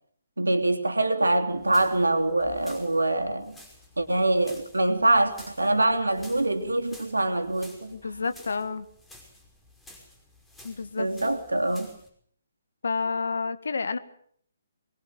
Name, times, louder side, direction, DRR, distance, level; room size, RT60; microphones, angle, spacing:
voice 1, 0.4-3.6 4.0-7.9 11.0-11.9, right 2 dB, 80° right, 3.3 m, -24 dB
sound 1, 1.5-12.1, left 1 dB, 5° left, 5.7 m, -52 dB
voice 2, 7.9-8.9 10.6-11.1 12.8-14.0, left 4 dB, 65° left, 1.9 m, -29 dB
23.0 x 22.0 x 7.9 m
figure-of-eight pair, 135°, 0 cm